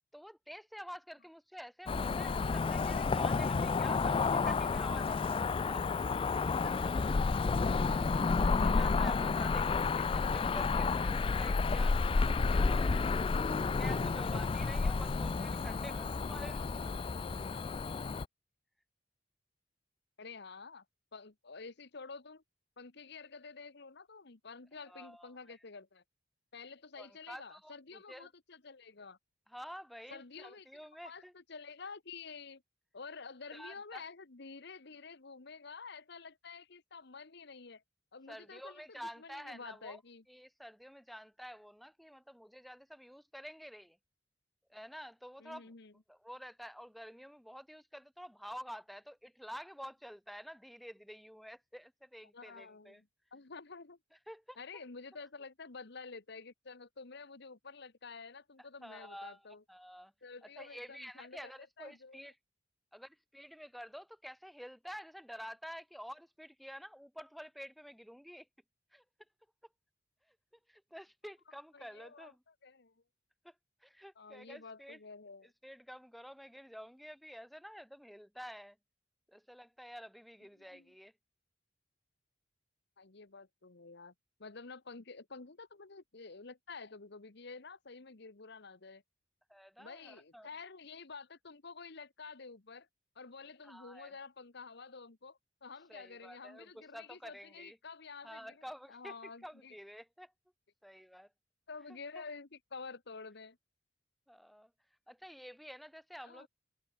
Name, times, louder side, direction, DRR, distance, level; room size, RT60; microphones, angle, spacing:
voice 1, 0.1-6.0 7.7-13.3 13.6-16.8 24.9-25.6 27.0-28.3 29.5-31.3 33.5-34.0 38.3-40.0 40.3-44.0 44.7-45.7 46.1-53.0 54.3-54.6 58.6-59.4 59.7-60.1 60.4-62.3 62.9-68.5 68.9-69.0 70.3-70.4 70.7-72.4 73.4-73.5 73.8-75.0 75.4-78.8 79.3-81.1 89.5-90.5 93.6-94.1 95.9-97.8 98.2-100.3 100.8-101.3 102.1-102.2 104.3-104.7 105.1-106.5, equal, ahead, 4.6 m, -50 dB
Cricket / Motor vehicle (road), 1.9-18.2, left 4 dB, 30° left, 0.3 m, -31 dB
voice 2, 20.2-20.8 21.1-22.4 22.8-26.0 26.5-29.2 30.1-30.7 31.0-32.6 32.9-37.8 38.1-40.2 45.4-45.9 52.3-54.0 54.6-59.6 60.2-62.3 71.7-72.9 74.2-75.5 80.7-80.9 83.0-84.1 84.4-89.0 89.8-92.9 93.1-98.6 98.9-99.7 101.7-103.6 106.2-106.5, left 4 dB, 65° left, 1.3 m, -50 dB
head